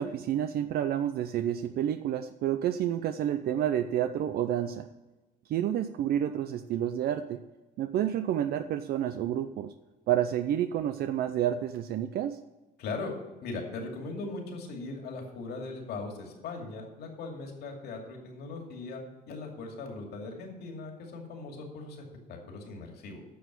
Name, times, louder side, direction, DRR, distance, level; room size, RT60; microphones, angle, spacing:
voice 1, 0.0-4.9 5.5-7.4 7.8-9.7 10.1-12.4, right 10 dB, 65° right, 9 dB, 0.5 m, -29 dB
voice 2, 12.8-13.1 13.4-23.2, left 3 dB, 70° left, 2 dB, 2.5 m, -39 dB
9.5 x 6.2 x 8.2 m, 1.2 s
cardioid pair, 110°, 17 cm